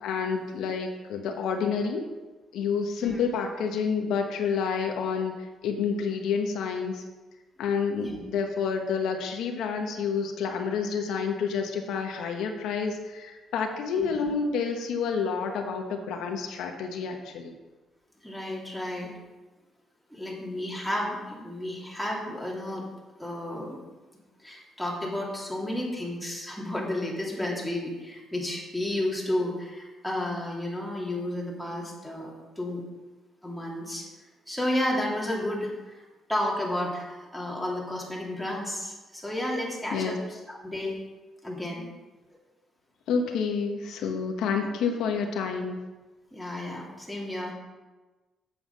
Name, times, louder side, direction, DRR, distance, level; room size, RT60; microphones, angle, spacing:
voice 1, 0.0-2.1 2.5-5.3 5.6-7.0 7.6-17.5 39.9-40.2 43.1-45.8, left 5 dB, 85° left, 3 dB, 1.1 m, -29 dB
voice 2, 14.0-14.3 18.2-19.1 20.1-22.9 23.2-23.8 24.4-32.8 33.4-34.1 34.5-36.0 36.3-40.9 41.4-41.8 46.3-47.5, left 1 dB, ahead, -4 dB, 2.9 m, -32 dB
7.8 x 7.5 x 5.4 m, 1.2 s
cardioid pair, 90°, 0 cm